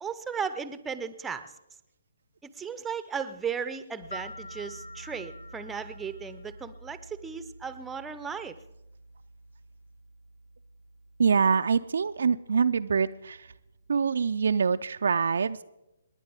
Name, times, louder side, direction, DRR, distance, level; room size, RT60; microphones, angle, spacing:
voice 1, 0.0-1.5 2.4-8.6, right 6 dB, 5° right, 12 dB, 0.7 m, -36 dB
Piano, 4.0-14.8, right 2 dB, 90° left, 1.1 m, -51 dB
sound 1, 4.1-6.8, equal, 60° left, 1.9 m, -45 dB
voice 2, 11.2-13.5 13.9-15.6, right 5 dB, 55° right, 10 dB, 0.4 m, -25 dB
29.0 x 10.0 x 3.6 m, 0.94 s
figure-of-eight pair, 135°, 0 cm